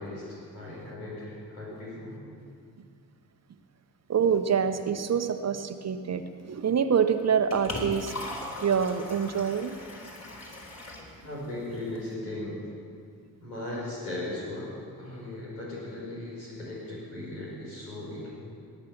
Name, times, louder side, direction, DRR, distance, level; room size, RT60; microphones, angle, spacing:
voice 1, 0.0-2.2 11.2-12.6 13.4-14.7 15.0-18.3, left 1 dB, 85° left, -6 dB, 5.2 m, -37 dB
voice 2, 4.1-8.1 8.6-9.8, right 7 dB, 35° right, 9 dB, 1.0 m, -26 dB
Liquid, 7.1-12.1, left 1 dB, 35° left, 4.1 m, -40 dB
18.5 x 10.0 x 7.2 m, 2.3 s
figure-of-eight pair, 45°, 47 cm